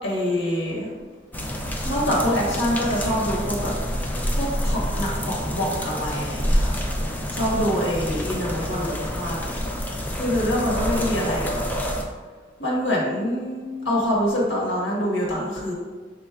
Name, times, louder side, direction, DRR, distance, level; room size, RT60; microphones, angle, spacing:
voice 1, 0.0-0.9 1.8-3.7 4.3-6.7 7.3-9.6 10.1-11.6 12.6-15.7, equal, 90° left, -4 dB, 1.3 m, -25 dB
sound 1, 1.3-12.0, equal, 10° left, 0.3 m, -27 dB
5.2 x 3.8 x 2.3 m, 1.4 s
head